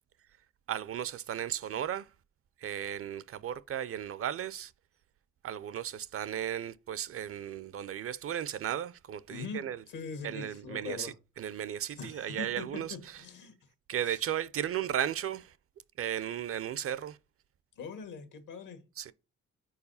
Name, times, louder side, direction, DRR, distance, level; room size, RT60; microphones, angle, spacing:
voice 1, 0.7-2.1 2.6-4.7 5.4-9.8 10.2-13.2 13.9-15.6 16.0-17.2 19.0-19.1, right 10 dB, 45° right, 0.4 m, -35 dB
voice 2, 9.3-11.1 12.0-13.5 14.1-14.2 17.8-18.8, left 4 dB, 80° left, 1.5 m, -42 dB
4.8 x 4.6 x 5.4 m
cardioid pair, 90°, 32 cm